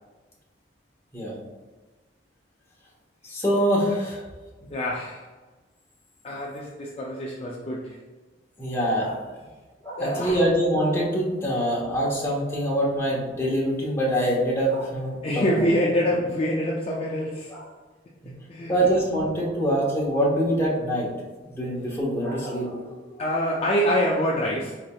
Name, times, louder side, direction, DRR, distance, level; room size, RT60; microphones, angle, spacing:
voice 1, 3.2-4.2 8.6-9.2 9.8-15.7 17.5-17.6 18.2-18.3 18.7-21.1 21.5-23.0, equal, 15° left, -5 dB, 0.8 m, -24 dB
voice 2, 4.7-5.3 6.2-8.0 10.0-10.4 15.2-17.5 18.5-18.7 23.2-24.8, equal, 35° left, -3 dB, 0.3 m, -25 dB
4.0 x 3.2 x 2.2 m, 1.3 s
head